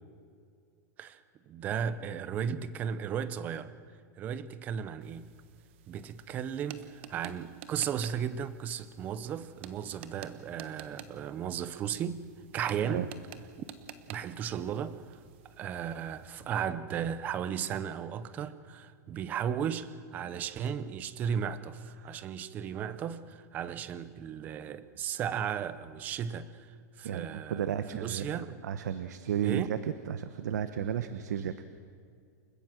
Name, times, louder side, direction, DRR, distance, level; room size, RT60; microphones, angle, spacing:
voice 1, 1.5-3.7 4.2-5.3 5.9-12.3 12.5-13.1 13.6-13.7 14.1-15.2 15.6-28.6 29.4-29.7, right 8 dB, 20° right, 0.7 m, -35 dB
sound 1, 5.0-16.5, right 9 dB, 45° right, 1.3 m, -51 dB
voice 2, 22.0-22.3 27.0-29.8 30.1-31.5, right 9 dB, 85° right, 1.1 m, -33 dB
29.0 x 15.5 x 7.5 m
supercardioid pair, 175°, 9 cm